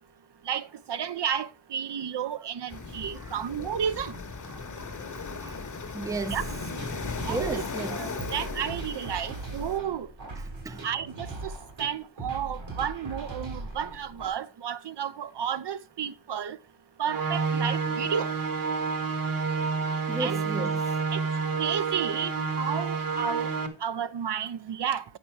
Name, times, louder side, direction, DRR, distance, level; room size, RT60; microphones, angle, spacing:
voice 1, 0.5-4.1 6.3-6.4 7.2-7.6 8.0-10.1 10.8-11.5 11.8-16.6 17.0-18.3 20.2-20.4 21.1-21.2 21.6-23.5 23.8-25.0, right 8 dB, 65° right, 0.7 m, -32 dB
sound 1, 2.7-9.8, left 4 dB, 40° left, 1.0 m, -37 dB
voice 2, 4.5-5.6 5.9-6.4 6.9-8.1 10.4-10.9 20.1-20.8, right 2 dB, 10° right, 0.5 m, -36 dB
sound 2, 6.3-14.3, right 2 dB, 80° right, 3.3 m, -39 dB
sound 3, 17.1-23.7, right 5 dB, 45° right, 1.3 m, -29 dB
8.6 x 5.3 x 4.5 m
wide cardioid pair, 135°, 45 cm